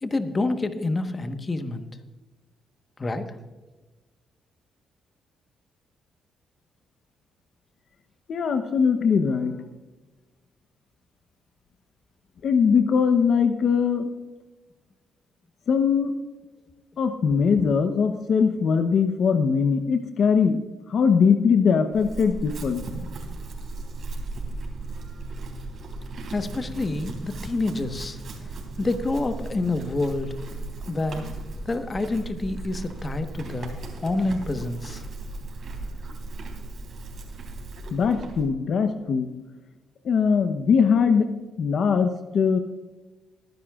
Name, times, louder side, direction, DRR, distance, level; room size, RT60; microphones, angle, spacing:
voice 1, 0.0-1.9 3.0-3.3 26.3-28.2 28.8-30.3 30.9-31.2 31.6-33.8 34.0-35.0, left 2 dB, 30° left, 8 dB, 1.2 m, -27 dB
voice 2, 8.3-9.6 12.4-14.1 15.7-16.1 17.0-20.6 20.9-22.9 37.9-39.3 40.0-41.3 41.6-42.6, left 6 dB, 60° left, 7 dB, 0.8 m, -21 dB
Chewing mastication / Livestock farm animals working animals, 21.9-38.5, right 2 dB, 55° right, 3.6 m, -36 dB
22.5 x 10.5 x 2.4 m, 1.2 s
cardioid pair, 90°, 0 cm